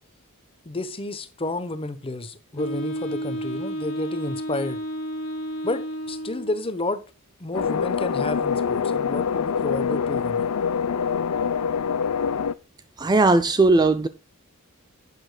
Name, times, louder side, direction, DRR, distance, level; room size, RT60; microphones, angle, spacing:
voice 1, 0.6-4.8 5.6-7.0 7.4-10.5, left 2 dB, 25° left, 0.9 m, -31 dB
Wind instrument woodwind instrument, 2.6-6.7, equal, 60° left, 1.7 m, -31 dB
sound 1, 7.5-12.5, left 6 dB, 85° left, 0.5 m, -25 dB
voice 2, 13.0-14.1, right 3 dB, 20° right, 0.4 m, -18 dB
11.0 x 8.6 x 2.3 m
head